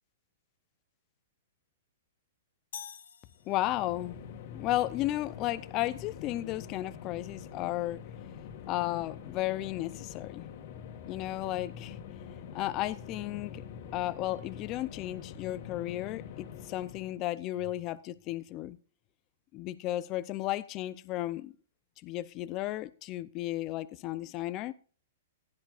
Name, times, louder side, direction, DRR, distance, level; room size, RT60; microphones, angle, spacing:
sound 1, 2.7-4.1, left 9 dB, 80° left, 1.5 m, -47 dB
sound 2, 3.4-17.2, left 8 dB, 50° left, 1.8 m, -45 dB
voice 1, 3.5-4.1 4.5-8.0 8.7-10.4 11.1-12.0 12.5-13.6 13.9-18.8 19.5-21.5 22.0-24.7, left 15 dB, 30° left, 0.5 m, -34 dB
15.5 x 10.5 x 2.5 m
hypercardioid pair, 150°, 0 cm